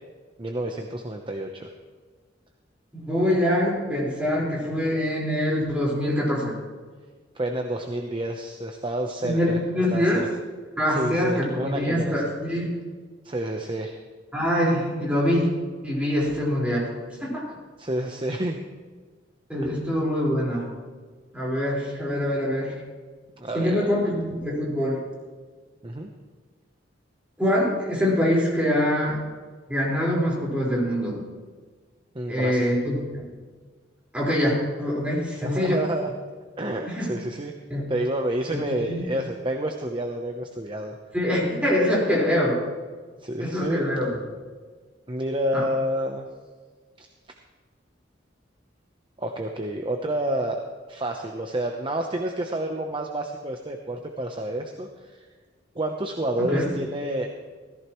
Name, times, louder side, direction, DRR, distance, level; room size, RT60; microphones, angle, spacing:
voice 1, 0.4-1.7 7.3-9.6 9.9-10.3 10.9-12.2 13.2-14.0 17.8-18.6 19.6-19.7 23.4-23.9 25.8-26.1 32.1-32.8 35.4-36.1 36.6-37.5 37.9-40.9 43.2-43.8 45.1-46.3 47.0-47.1 49.2-50.6 50.9-55.3 55.7-57.3, right 1 dB, 25° right, 3 dB, 0.8 m, -29 dB
voice 2, 2.9-6.5 9.2-10.2 10.8-12.7 14.3-15.5 15.8-16.9 17.2-17.3 19.5-20.7 21.3-22.7 23.5-25.0 27.4-29.2 29.7-31.2 32.2-33.2 34.1-35.8 36.9-37.1 37.7-37.8 38.9-39.0 41.1-42.6 43.4-44.1 45.5-45.6 56.4-56.7, equal, 5° right, -5 dB, 4.6 m, -24 dB
17.0 x 14.5 x 3.1 m, 1.5 s
head